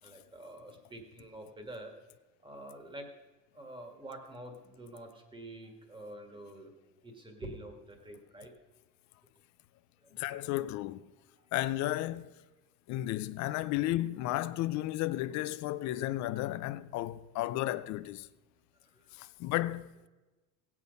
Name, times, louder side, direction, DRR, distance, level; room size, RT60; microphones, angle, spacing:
voice 1, 0.0-1.9 2.4-3.1 3.5-6.7 7.0-8.5 10.0-10.2 18.9-19.1, right 1 dB, 15° right, 1.8 m, -47 dB
voice 2, 10.1-11.0 11.5-12.3 12.9-18.3 19.1-20.1, left 15 dB, 50° left, 0.5 m, -33 dB
16.5 x 8.5 x 5.3 m
cardioid pair, 145°, 36 cm